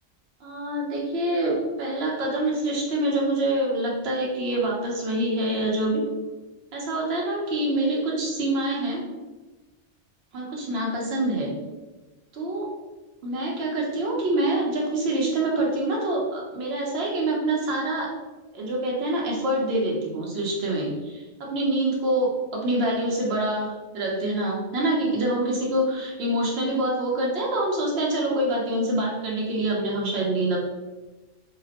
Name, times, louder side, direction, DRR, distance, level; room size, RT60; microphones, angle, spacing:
voice 1, 0.4-6.0 6.7-9.0 10.3-11.5 12.3-12.7 13.2-18.1 18.5-30.6, right 1 dB, 65° right, -2 dB, 0.8 m, -26 dB
2.7 x 2.0 x 2.7 m, 1.1 s
omnidirectional pair, 1.2 m